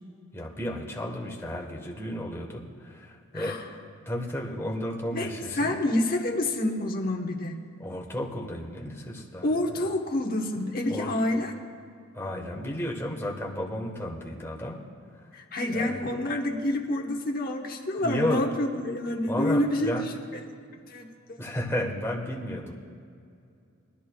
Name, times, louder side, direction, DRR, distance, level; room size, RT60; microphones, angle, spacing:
voice 1, 0.3-3.6 4.0-5.8 7.8-9.5 9.8-9.9 10.9-11.1 12.1-14.8 15.1-15.3 15.7-16.1 18.0-18.4 19.3-20.0 21.4-22.7, left 1 dB, 10° left, -2 dB, 1.3 m, -33 dB
voice 2, 3.3-3.6 5.1-5.3 5.6-7.6 9.4-11.5 15.3-20.4 20.9-21.0 21.3-21.4, left 1 dB, 45° left, 2 dB, 1.1 m, -28 dB
20.0 x 13.0 x 2.3 m, 2.4 s
head